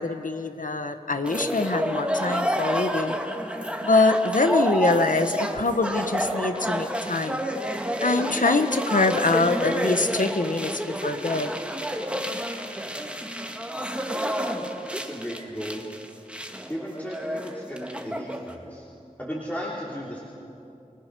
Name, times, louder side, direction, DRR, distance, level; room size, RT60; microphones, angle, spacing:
voice 1, 0.0-3.2 3.8-7.4 8.0-10.7 11.0-11.5, left 3 dB, 70° left, 8 dB, 1.4 m, -24 dB
sound 1, 1.2-18.5, equal, 10° right, 1.8 m, -29 dB
voice 2, 14.9-15.9 16.7-18.8 19.2-20.2, equal, 10° left, -5 dB, 3.0 m, -35 dB
29.0 x 20.5 x 6.3 m, 2.7 s
wide cardioid pair, 55°, 14 cm